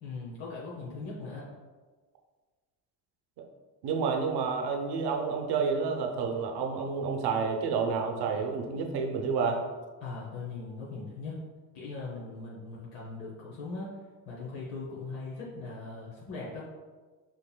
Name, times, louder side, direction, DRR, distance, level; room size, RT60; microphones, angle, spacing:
voice 1, 0.0-1.5 10.0-11.4 11.7-13.9 14.3-16.7, left 3 dB, 85° left, -5 dB, 0.9 m, -40 dB
voice 2, 3.8-9.6, right 5 dB, 60° right, 3 dB, 0.7 m, -29 dB
5.0 x 2.9 x 2.2 m, 1.4 s
supercardioid pair, 75°, 45 cm